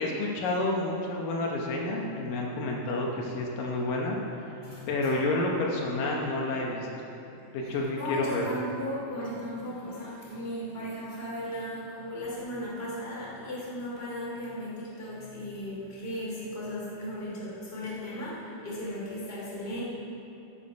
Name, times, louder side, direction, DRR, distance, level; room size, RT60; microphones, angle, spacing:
voice 1, 0.0-4.6 4.9-6.9 7.5-8.6, left 2 dB, 75° left, -1 dB, 2.6 m, -29 dB
voice 2, 4.6-5.1 7.3-19.8, equal, 20° left, -6 dB, 2.5 m, -36 dB
15.5 x 7.0 x 5.3 m, 2.9 s
omnidirectional pair, 4.0 m